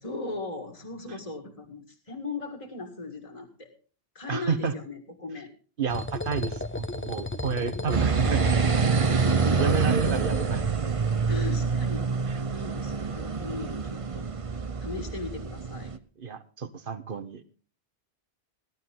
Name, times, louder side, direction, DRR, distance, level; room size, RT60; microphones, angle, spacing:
voice 1, 0.0-3.7 4.1-5.5 7.7-7.9 8.9-9.7 11.3-12.2 12.5-15.9, left 3 dB, 35° left, 2 dB, 2.0 m, -38 dB
voice 2, 4.3-4.7 5.8-8.4 9.6-10.6 16.2-17.4, right 5 dB, 60° right, 12 dB, 1.2 m, -30 dB
sound 1, 5.9-11.1, left 2 dB, 15° left, 0.5 m, -34 dB
sound 2, 7.9-16.0, right 5 dB, 35° right, 0.8 m, -26 dB
17.5 x 12.0 x 3.7 m, 0.39 s
omnidirectional pair, 1.1 m